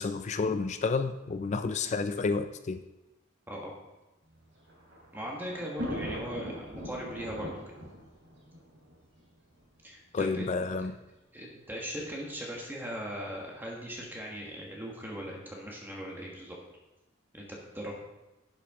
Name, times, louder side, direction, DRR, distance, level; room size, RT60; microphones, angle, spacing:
voice 1, 0.0-2.8 10.1-11.0, left 4 dB, 35° left, 9 dB, 0.4 m, -30 dB
Thunder, 4.3-9.7 10.5-10.6 10.8-10.9 12.0-12.3, equal, 75° right, 3.8 m, -41 dB
voice 2, 5.1-7.5 9.8-10.9 11.3-16.6 17.3-17.9, equal, 10° right, -2 dB, 1.4 m, -39 dB
10.5 x 8.2 x 3.6 m, 1.0 s
head